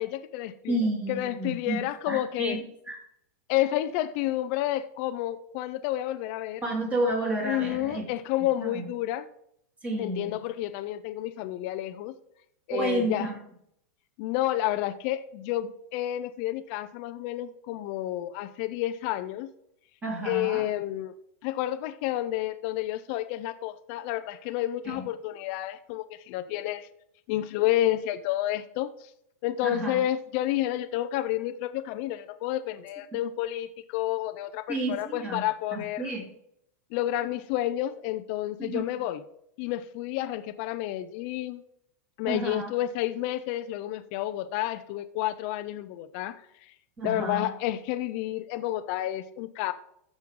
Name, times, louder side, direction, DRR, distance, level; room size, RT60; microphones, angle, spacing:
voice 1, 0.0-0.8 1.1-2.6 3.5-6.6 7.4-9.3 10.0-12.1 12.7-13.3 14.2-19.5 20.2-21.1 21.4-26.9 27.3-29.1 29.4-36.1 36.9-39.2 39.6-41.6 42.2-46.7 47.0-49.7, left 13 dB, 45° left, 0.6 m, -30 dB
voice 2, 0.7-3.0 6.6-8.0 8.7-8.8 9.8-10.3 12.7-13.4 20.0-20.6 24.8-25.0 29.6-30.0 34.7-35.4 35.7-36.2 38.6-38.8 42.3-42.7 47.0-47.5, right 1 dB, 15° right, 3.3 m, -31 dB
14.5 x 6.3 x 3.8 m
supercardioid pair, 150°, 9 cm